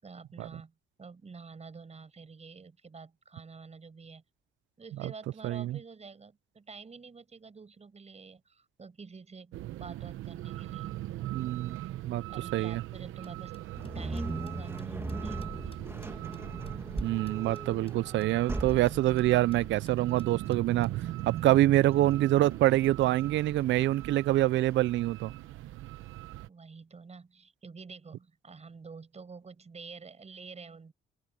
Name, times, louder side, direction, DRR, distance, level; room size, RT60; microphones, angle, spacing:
voice 1, 0.0-4.2 4.8-11.0 12.3-13.6 13.9-15.8 26.5-30.9, right 4 dB, 35° right, 7.1 m, -48 dB
voice 2, 5.4-5.8 11.3-12.2 12.5-12.8 17.0-20.9 21.3-25.3, right 15 dB, 70° right, 0.4 m, -26 dB
sound 1, 9.5-26.5, right 15 dB, 85° right, 1.0 m, -40 dB
sound 2, 13.0-17.6 17.9-18.0 18.2-18.3 18.5-18.6 18.9-19.3 19.5-19.6 19.9-20.9, left 4 dB, 30° left, 6.6 m, -61 dB
sound 3, 13.8-24.9, right 2 dB, 10° right, 2.0 m, -40 dB
open air
cardioid pair, 90°, 20 cm